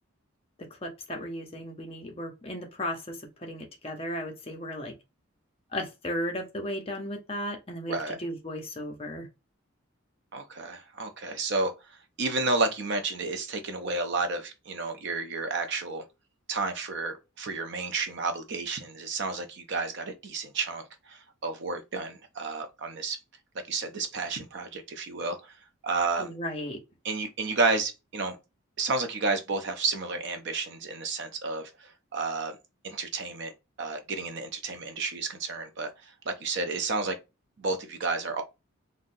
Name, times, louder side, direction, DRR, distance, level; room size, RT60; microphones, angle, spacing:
voice 1, 0.6-4.9 5.7-9.3 26.2-26.8, equal, 25° left, 0.7 m, -35 dB
voice 2, 10.3-11.7 12.2-16.0 16.5-23.2 23.7-25.5 25.8-26.3 27.0-28.4 28.8-32.6 32.8-33.5 33.8-37.2 37.6-38.4, right 3 dB, 55° right, 0.5 m, -31 dB
3.8 x 2.2 x 2.6 m
head